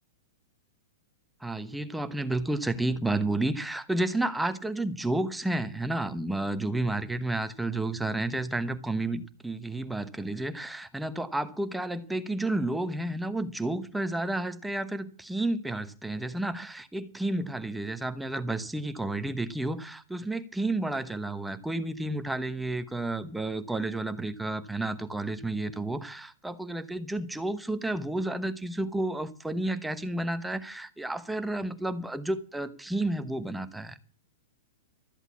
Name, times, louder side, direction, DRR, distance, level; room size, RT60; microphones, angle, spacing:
voice 1, 1.4-34.0, right 2 dB, 5° right, 1.1 m, -31 dB
13.5 x 8.0 x 8.5 m
hypercardioid pair, 150°, 0 cm